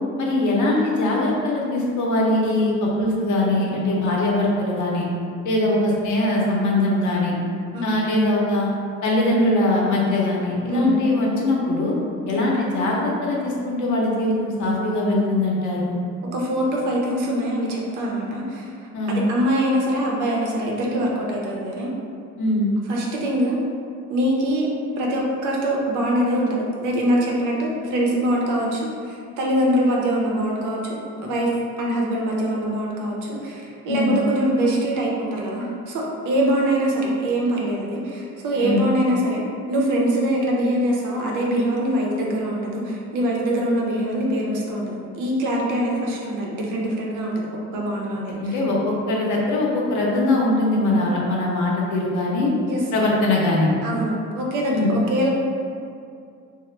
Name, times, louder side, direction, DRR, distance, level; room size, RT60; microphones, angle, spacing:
voice 1, 0.2-5.1 5.4-7.3 7.8-8.7 9.0-12.0 12.3-15.9 18.9-19.2 22.4-22.7 33.9-34.1 38.6-38.8 48.4-52.5 52.9-53.7 54.7-55.0, left 2 dB, 75° left, -3 dB, 0.7 m, -21 dB
voice 2, 10.7-11.1 12.3-12.5 16.2-18.7 19.1-21.9 22.9-23.6 24.1-24.7 25.0-31.5 31.8-39.4 39.7-47.5 47.7-48.5 52.7-52.8 53.8-55.3, right 1 dB, 85° right, -2 dB, 0.7 m, -23 dB
2.9 x 2.1 x 3.1 m, 2.4 s
cardioid pair, 90°, 30 cm